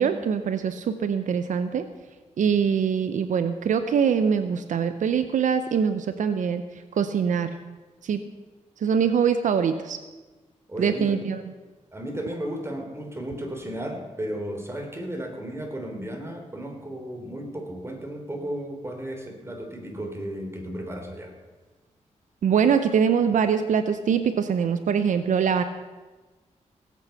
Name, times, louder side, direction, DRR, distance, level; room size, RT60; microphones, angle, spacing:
voice 1, 0.0-1.9 2.4-6.6 6.9-7.5 8.0-8.2 8.8-10.0 10.8-11.4 22.4-25.6, right 7 dB, 85° right, 10 dB, 0.7 m, -23 dB
voice 2, 10.7-11.2 11.9-21.3, right 1 dB, 20° right, 3 dB, 3.2 m, -34 dB
18.0 x 8.4 x 5.8 m, 1.2 s
cardioid pair, 70°, 13 cm